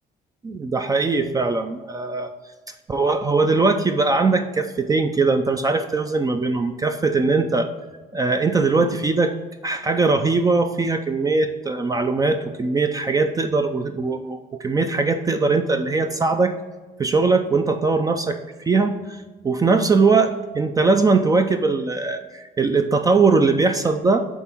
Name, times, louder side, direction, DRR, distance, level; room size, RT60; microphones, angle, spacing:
voice 1, 0.4-2.3 2.9-7.7 8.1-9.3 9.6-16.5 17.0-18.4 18.7-19.2 19.4-24.2, right 3 dB, 20° right, 7 dB, 0.4 m, -20 dB
7.2 x 4.1 x 4.5 m, 1.3 s
cardioid pair, 110°, 17 cm